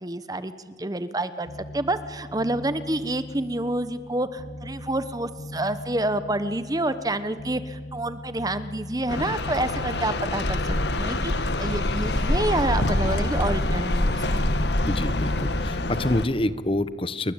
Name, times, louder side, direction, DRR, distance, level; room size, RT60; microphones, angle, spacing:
voice 1, 0.0-10.6 10.9-14.4, right 1 dB, 20° right, 12 dB, 1.0 m, -28 dB
sound 1, 1.5-15.8, left 1 dB, 85° left, 1.5 m, -41 dB
sound 2, 9.1-16.3, left 1 dB, 70° left, 1.8 m, -25 dB
voice 2, 14.9-17.3, left 1 dB, 30° left, 14 dB, 1.1 m, -27 dB
29.5 x 22.5 x 9.0 m, 1.5 s
head